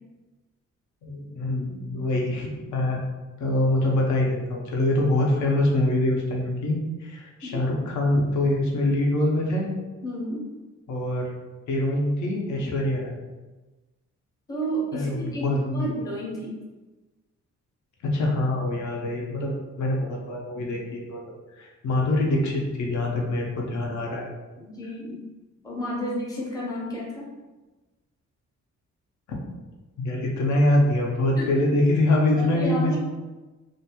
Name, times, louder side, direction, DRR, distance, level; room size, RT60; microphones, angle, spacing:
voice 1, 1.0-3.0 3.4-9.7 10.9-11.3 11.7-13.1 14.9-15.9 18.0-21.2 21.5-24.3 30.0-33.0, left 1 dB, 70° left, -1 dB, 0.6 m, -24 dB
voice 2, 10.0-10.5 14.5-16.5 24.6-25.3 25.6-27.3 31.4-31.5 32.4-33.0, equal, 10° left, -5 dB, 0.5 m, -31 dB
2.5 x 2.2 x 2.8 m, 1.2 s
wide cardioid pair, 155°, 30 cm